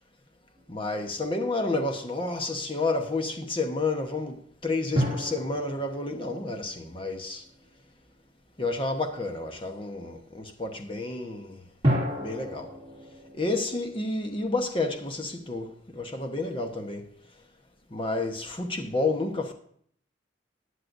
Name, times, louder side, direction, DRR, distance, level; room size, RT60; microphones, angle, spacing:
sound 1, 0.6-1.3 5.0-7.8 11.8-15.1, equal, 30° right, 2.4 m, -32 dB
voice 1, 0.7-7.4 8.6-11.6 12.2-12.7 13.3-17.1 17.9-19.5, left 2 dB, 30° left, 1.1 m, -30 dB
14.0 x 9.9 x 2.7 m
head